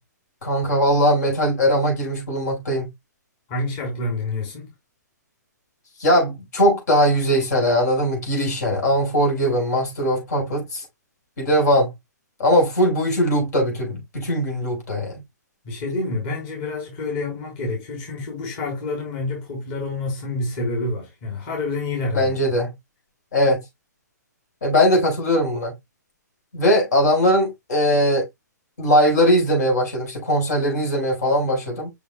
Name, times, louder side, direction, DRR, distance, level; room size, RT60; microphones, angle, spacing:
voice 1, 0.4-2.9 6.0-10.8 11.4-11.9 12.4-15.2 22.1-22.7 23.3-23.6 24.6-25.7 26.5-28.3 28.8-31.9, equal, 65° left, 5.1 m, -20 dB
voice 2, 3.5-4.7 15.6-22.4, left 2 dB, 35° left, 3.8 m, -28 dB
6.7 x 6.4 x 2.2 m
hypercardioid pair, 135°, 10 cm